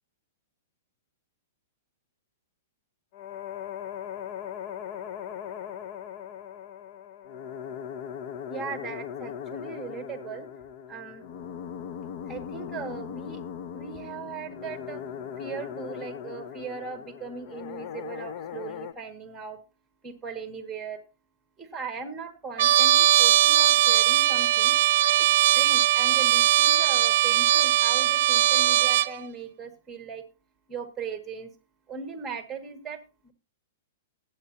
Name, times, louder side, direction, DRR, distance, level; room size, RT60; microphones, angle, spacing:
sound 1, 3.1-18.9, left 8 dB, 45° left, 0.9 m, -39 dB
voice 1, 8.5-10.5 10.9-11.2 12.3-13.4 13.7-15.0 15.4-19.6 20.0-21.0 21.6-24.8 25.2-25.3 25.5-30.2 30.7-31.5 31.9-33.3, right 5 dB, 10° right, 7 dB, 1.9 m, -38 dB
Trumpet, 22.6-29.1, right 13 dB, 60° right, 0.5 m, -20 dB
18.5 x 8.2 x 2.8 m, 0.29 s
hypercardioid pair, 145°, 0 cm